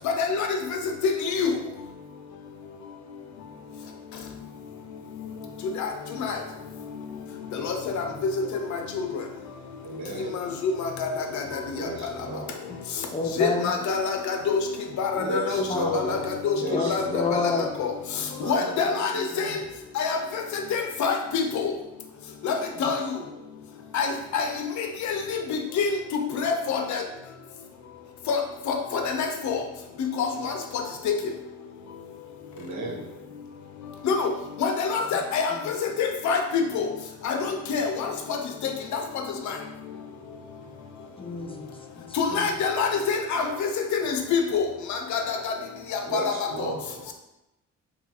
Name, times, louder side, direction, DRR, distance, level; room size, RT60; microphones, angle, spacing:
voice 1, 1.0-1.5 5.8-5.9 6.2-6.4 7.6-8.3 10.6-11.1 11.3-11.4 13.4-14.6 15.0-16.2 16.4-16.6 16.9-17.4 17.8-17.9 18.4-19.6 20.0-20.2 20.7-21.7 22.4-23.0 23.9-24.5 25.0-25.4 25.8-27.0 28.3-28.4 28.7-29.6 30.2-30.5 31.1-31.2 34.0-34.3 34.6-35.5 35.8-36.9 37.2-38.4 42.2-43.7 44.0-44.6 44.9-45.5 45.9-46.3, left 5 dB, 70° left, 4 dB, 0.6 m, -26 dB
voice 2, 9.8-10.4 11.8-12.6 15.1-16.3 16.6-17.4 18.4-19.6 22.8-23.0 32.5-33.0 46.0-47.0, right 1 dB, 70° right, -1 dB, 0.9 m, -34 dB
voice 3, 13.1-13.7 15.2-16.0 16.7-17.7 32.9-33.0 35.5-35.6 41.2-42.5, left 4 dB, 20° left, 3 dB, 0.4 m, -30 dB
2.8 x 2.3 x 4.2 m, 0.94 s
cardioid pair, 90°, 30 cm